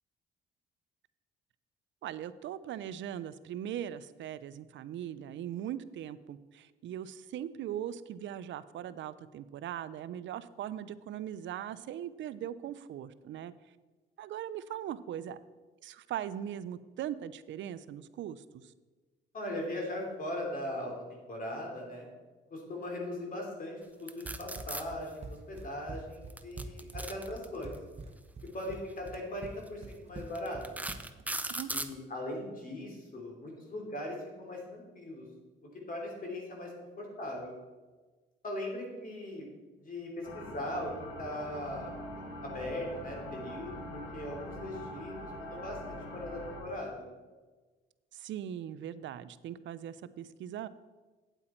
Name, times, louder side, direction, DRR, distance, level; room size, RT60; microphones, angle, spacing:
voice 1, 2.0-13.5 14.2-15.4 15.8-18.6 31.5-31.7 48.1-50.7, right 10 dB, 70° right, 15 dB, 0.5 m, -40 dB
voice 2, 19.3-22.1 22.5-23.7 24.0-27.8 28.5-30.6 31.7-35.2 35.9-37.5 38.4-39.5 39.8-40.9 41.2-41.9 42.4-47.0, left 1 dB, 45° left, 0 dB, 3.0 m, -39 dB
sound 1, 24.1-24.8 26.3-27.8 28.9-29.1 29.7-29.8 30.4-31.9, right 2 dB, 10° right, 0.6 m, -37 dB
Run, 24.2-31.3, right 3 dB, 35° right, 0.9 m, -45 dB
sound 2, 40.2-46.6, equal, 90° left, 1.9 m, -43 dB
9.0 x 8.3 x 4.4 m, 1.3 s
cardioid pair, 90°, 20 cm